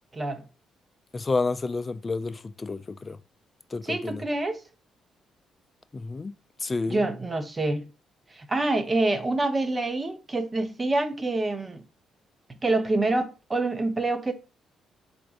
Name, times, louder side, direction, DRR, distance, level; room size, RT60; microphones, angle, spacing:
voice 1, 0.1-0.4 3.8-4.6 6.9-7.9 8.4-11.8 12.6-14.3, right 2 dB, 25° right, 0.6 m, -26 dB
voice 2, 1.1-3.2 3.7-4.2 5.9-6.3 6.6-7.0, left 3 dB, 30° left, 0.3 m, -30 dB
3.9 x 2.5 x 3.4 m
cardioid pair, 90°, 0 cm